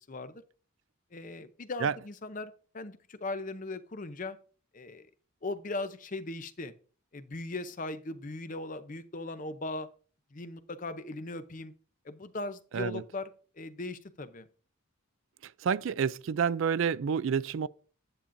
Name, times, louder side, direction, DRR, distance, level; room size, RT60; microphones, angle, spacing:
voice 1, 0.1-0.4 1.1-4.4 4.7-5.1 5.4-6.7 7.1-9.9 10.3-11.7 12.0-13.3 13.5-14.5, left 2 dB, 40° left, 0.6 m, -39 dB
voice 2, 15.4-17.7, right 6 dB, 65° right, 0.4 m, -29 dB
9.9 x 8.5 x 2.6 m
head